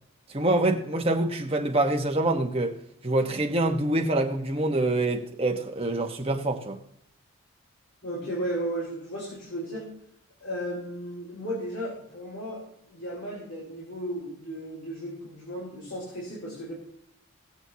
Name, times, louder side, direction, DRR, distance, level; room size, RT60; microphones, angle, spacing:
voice 1, 0.3-2.8 3.0-6.8, right 2 dB, 25° right, 1.2 m, -25 dB
voice 2, 8.0-9.9 10.4-12.6 12.9-16.7, equal, 80° left, 4.2 m, -34 dB
19.5 x 7.8 x 2.8 m
head